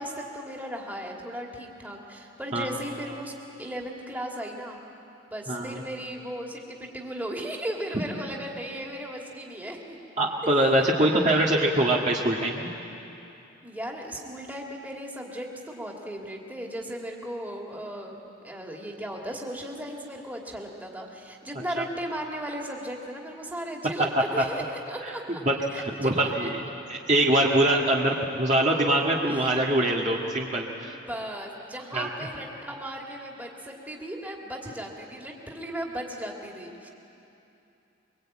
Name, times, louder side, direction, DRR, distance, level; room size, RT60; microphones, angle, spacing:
voice 1, 0.0-3.3 3.6-4.8 5.3-10.0 10.4-11.5 13.6-25.4 25.7-26.3 29.1-29.5 30.9-36.9, equal, 10° right, -1 dB, 2.6 m, -36 dB
voice 2, 5.5-5.8 10.2-12.7 21.8-21.9 24.2-24.4 25.0-25.1 25.5-26.6 26.9-31.0 31.9-32.1, right 1 dB, 35° right, -2 dB, 1.8 m, -23 dB
24.0 x 23.5 x 8.9 m, 2.8 s
head